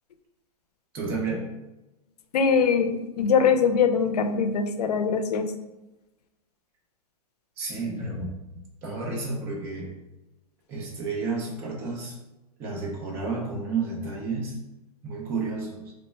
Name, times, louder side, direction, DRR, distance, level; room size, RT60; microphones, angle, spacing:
voice 1, 0.9-1.5 7.6-8.4 8.8-9.9 10.7-12.2 12.6-14.6 15.0-15.9, right 3 dB, 10° right, -1 dB, 0.3 m, -31 dB
voice 2, 2.3-5.5, left 6 dB, 85° left, 7 dB, 0.5 m, -22 dB
3.0 x 2.1 x 4.2 m, 1.0 s
hypercardioid pair, 170°, 20 cm